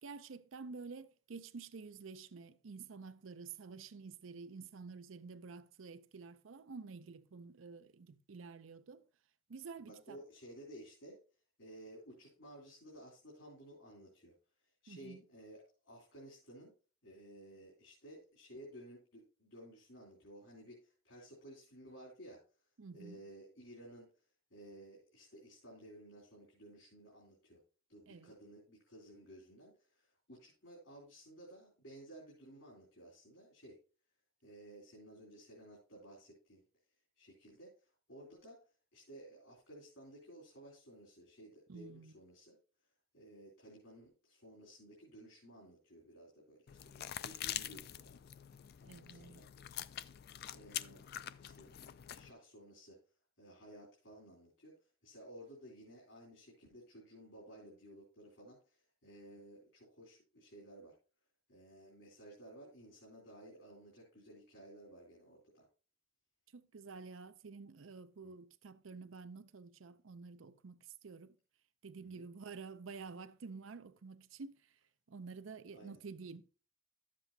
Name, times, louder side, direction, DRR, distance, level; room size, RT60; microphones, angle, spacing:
voice 1, 0.0-9.0 9.5-10.2 14.9-15.2 22.8-23.2 28.1-28.3 41.7-42.1 48.8-49.4 66.5-71.4 71.8-74.6 75.1-76.4, right 4 dB, 80° right, 0.6 m, -50 dB
voice 2, 9.8-11.2 11.6-14.3 14.8-16.7 17.0-22.4 22.9-24.1 24.5-27.6 27.9-33.8 34.4-36.6 37.2-38.6 38.9-42.6 43.1-48.1 48.8-49.5 50.5-51.0 51.4-51.7 52.1-53.0 53.4-60.9 61.5-65.6 68.2-68.4 72.0-72.3 75.7-76.0, right 1 dB, 75° left, 3.2 m, -55 dB
sound 1, 46.7-52.3, left 11 dB, 50° left, 0.4 m, -45 dB
12.0 x 7.5 x 2.7 m
head